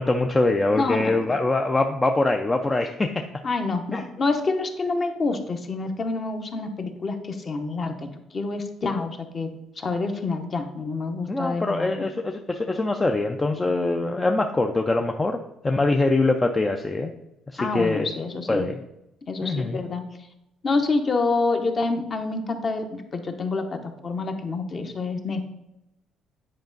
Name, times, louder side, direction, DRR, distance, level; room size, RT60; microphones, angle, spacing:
voice 1, 0.0-3.1 3.9-4.0 11.3-17.1 17.7-18.1 18.5-18.8 19.4-19.8, left 2 dB, 15° left, 4 dB, 0.4 m, -23 dB
voice 2, 0.7-1.3 3.4-9.5 9.8-12.1 17.6-18.7 19.3-20.0 20.6-25.5, left 3 dB, 30° left, 6 dB, 0.8 m, -27 dB
9.6 x 5.0 x 3.9 m, 0.88 s
cardioid pair, 155°, 0 cm